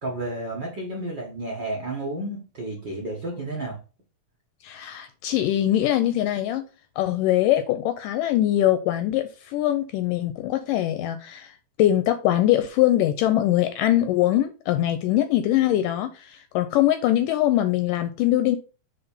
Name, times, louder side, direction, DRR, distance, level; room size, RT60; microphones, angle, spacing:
voice 1, 0.0-3.8, right 2 dB, 45° right, 1.5 m, -31 dB
voice 2, 4.6-6.6 7.0-11.5 11.8-18.6, left 13 dB, 80° left, 2.0 m, -22 dB
5.8 x 3.9 x 5.4 m
omnidirectional pair, 4.2 m